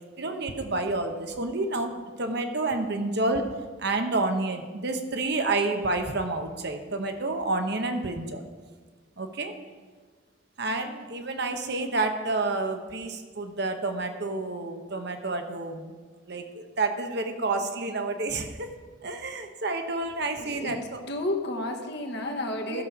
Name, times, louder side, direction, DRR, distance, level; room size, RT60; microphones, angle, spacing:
voice 1, 0.2-3.5 3.8-8.4 9.2-9.5 10.6-15.9 16.3-18.7 19.0-21.0 22.7-22.8, right 2 dB, 55° right, 6 dB, 1.0 m, -29 dB
voice 2, 20.4-20.8 21.1-22.8, left 1 dB, 55° left, 1 dB, 1.4 m, -31 dB
15.0 x 6.9 x 4.9 m, 1.4 s
head